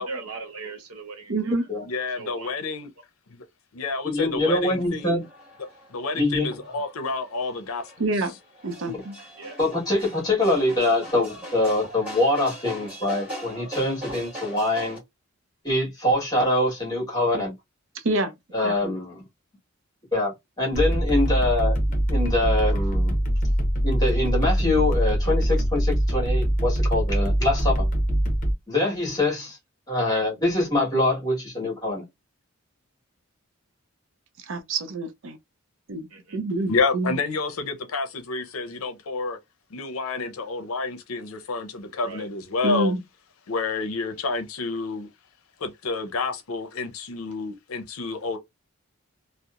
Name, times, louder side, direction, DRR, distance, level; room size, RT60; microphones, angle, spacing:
voice 1, 0.0-1.7 2.2-2.5 9.4-9.6 20.9-21.0 36.1-36.4 42.0-42.3, right 4 dB, 90° right, 0.9 m, -39 dB
voice 2, 1.3-1.6 8.0-8.3 8.6-9.2 17.9-18.3 18.6-19.0 34.5-35.4 35.9-36.1 36.3-37.2 42.6-43.0, right 2 dB, 60° right, 0.5 m, -27 dB
voice 3, 1.8-2.9 3.3-3.4 3.7-5.3 5.9-8.1 36.7-39.4 39.7-42.9 43.5-45.1 45.6-48.4, left 4 dB, 75° left, 0.6 m, -29 dB
voice 4, 4.0-5.2 6.1-6.5 9.6-15.0 15.6-17.5 18.5-19.2 20.1-21.8 22.1-23.2 23.8-27.9 28.7-29.6 29.9-32.0, left 1 dB, 15° left, 1.3 m, -24 dB
sound 1, 4.4-15.0, right 1 dB, 5° right, 1.5 m, -41 dB
sound 2, 20.7-28.5, equal, 40° left, 0.7 m, -23 dB
2.8 x 2.0 x 2.4 m
head